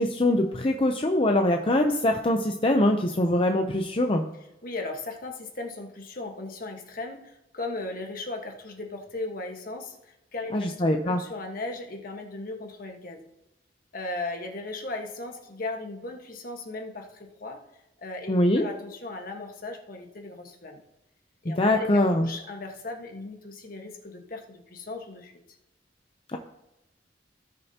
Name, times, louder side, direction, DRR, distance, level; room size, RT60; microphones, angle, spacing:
voice 1, 0.0-4.2 10.5-11.2 18.3-18.7 21.5-22.3 26.3-26.4, left 1 dB, 30° left, 4 dB, 0.6 m, -23 dB
voice 2, 4.6-13.3 13.9-17.6 18.0-20.8 21.4-21.9 22.2-25.3, left 2 dB, 55° left, 3 dB, 1.4 m, -37 dB
17.0 x 6.5 x 2.9 m, 0.94 s
head